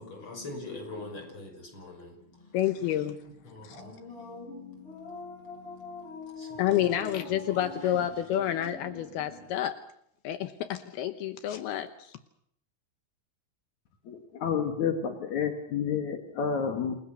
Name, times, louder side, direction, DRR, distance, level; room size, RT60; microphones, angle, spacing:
voice 1, 0.0-3.0 3.2-8.1 8.4-9.6, left 3 dB, 25° left, 6.3 m, -43 dB
voice 2, 2.5-3.2 3.6-3.8 6.6-9.7 10.2-12.2, left 11 dB, 80° left, 2.3 m, -29 dB
voice 3, 14.1-16.9, left 7 dB, 55° left, 2.3 m, -30 dB
28.5 x 19.5 x 6.5 m
omnidirectional pair, 6.0 m